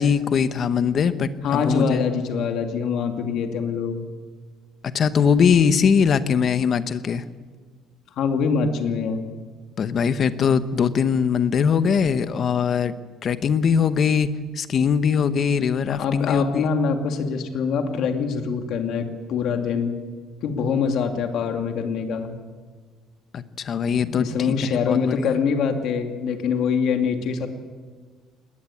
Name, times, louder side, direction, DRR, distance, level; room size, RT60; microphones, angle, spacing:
voice 1, 0.0-2.0 4.9-7.2 9.8-12.9 13.2-14.3 14.6-16.6 23.3-24.3 24.6-25.2, left 6 dB, 35° left, 13 dB, 1.0 m, -21 dB
voice 2, 1.4-4.0 8.2-9.2 16.0-19.9 20.4-22.4 24.1-27.5, left 5 dB, 50° left, 6 dB, 2.3 m, -24 dB
20.0 x 19.5 x 8.6 m, 1.5 s
cardioid pair, 175°, 0 cm